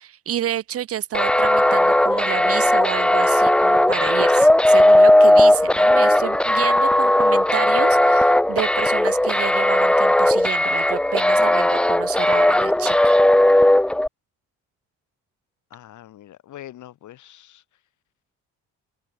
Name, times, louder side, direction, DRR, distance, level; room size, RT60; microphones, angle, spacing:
voice 1, 0.0-13.2 13.5-13.7, right 11 dB, 50° right, 0.6 m, -30 dB
sound 1, 1.1-14.1, left 1 dB, 5° left, 0.4 m, -16 dB
Guitar, 3.6-4.4, left 4 dB, 30° left, 6.4 m, -56 dB
voice 2, 15.7-17.6, left 13 dB, 75° left, 3.0 m, -43 dB
cardioid pair, 90°, 30 cm